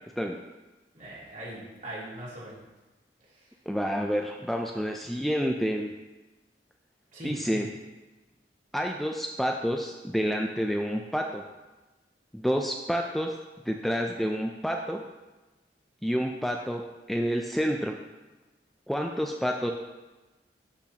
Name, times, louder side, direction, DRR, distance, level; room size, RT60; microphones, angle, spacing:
voice 1, 0.9-2.6 7.1-7.7, equal, 50° right, -8 dB, 3.0 m, -40 dB
voice 2, 3.7-5.9 7.2-7.7 8.7-11.4 12.3-13.3 13.7-15.0 16.0-16.8 17.1-18.0 18.9-19.7, equal, ahead, 2 dB, 0.4 m, -29 dB
12.0 x 6.0 x 2.9 m, 1.1 s
head